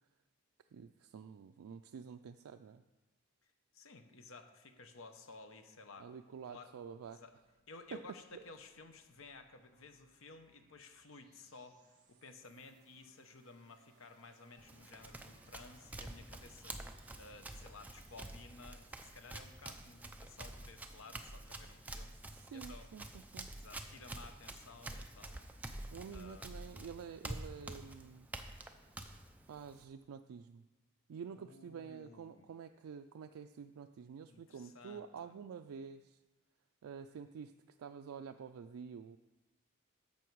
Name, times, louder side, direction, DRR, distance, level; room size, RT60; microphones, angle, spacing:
voice 1, 0.7-2.8 6.0-7.2 7.9-8.0 8.3-8.4 22.3-23.5 25.9-28.3 29.5-30.6 31.1-36.2 36.8-37.5 37.8-39.2, right 6 dB, 80° right, 7 dB, 0.3 m, -49 dB
voice 2, 3.7-6.1 6.5-6.7 7.1-7.3 7.7-22.9 23.5-25.5 26.1-26.5 31.3-32.5 34.3-35.4, left 3 dB, 70° left, 7 dB, 0.8 m, -55 dB
sound 1, 6.4-19.7, right 4 dB, 55° right, 1.5 m, -71 dB
Run, 14.6-29.8, right 1 dB, 5° right, 0.4 m, -48 dB
10.5 x 7.0 x 4.6 m, 1.1 s
head